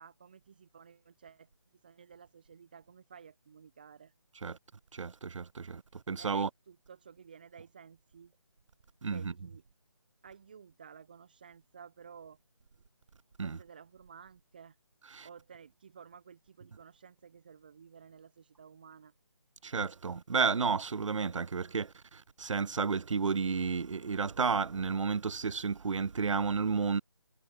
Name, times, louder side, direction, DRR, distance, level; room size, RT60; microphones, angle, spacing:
voice 1, 0.0-1.5 1.8-4.1 6.2-8.3 9.1-9.6 10.2-12.4 13.4-14.8 15.2-19.1, right 6 dB, 20° right, 1.3 m, -54 dB
voice 2, 4.9-5.8 6.1-6.5 9.0-9.3 13.4-13.6 15.1-15.3 19.6-27.0, right 5 dB, 80° right, 0.5 m, -32 dB
figure-of-eight pair, 180°, 16 cm